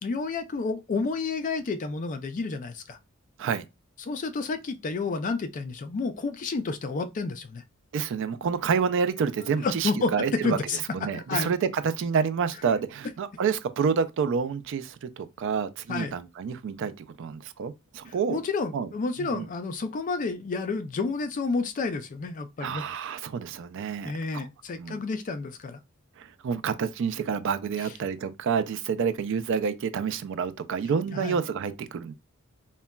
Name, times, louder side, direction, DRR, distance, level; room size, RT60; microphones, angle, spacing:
voice 1, 0.0-3.0 4.0-7.6 9.6-11.5 15.9-16.2 18.1-22.8 24.0-25.8 31.1-31.4, left 4 dB, 40° left, 0.3 m, -30 dB
voice 2, 7.9-10.6 10.9-18.4 18.7-18.9 19.2-19.5 22.6-24.5 24.8-25.0 26.2-32.1, right 6 dB, 60° right, 0.3 m, -28 dB
3.7 x 2.1 x 2.2 m
head